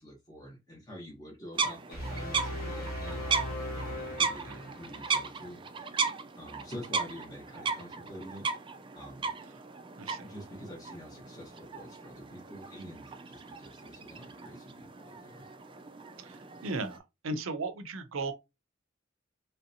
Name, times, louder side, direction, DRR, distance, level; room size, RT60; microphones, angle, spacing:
voice 1, 0.0-3.5 3.7-5.6 6.4-8.5 8.9-9.3 10.2-15.5, equal, 20° left, 1.0 m, -47 dB
sound 1, 1.5-17.0, right 5 dB, 25° right, 0.3 m, -36 dB
sound 2, 1.9-5.1, equal, 40° left, 1.1 m, -38 dB
voice 2, 10.0-10.3 16.2-17.0 17.2-18.3, right 3 dB, 75° right, 0.5 m, -36 dB
3.2 x 2.7 x 2.6 m
head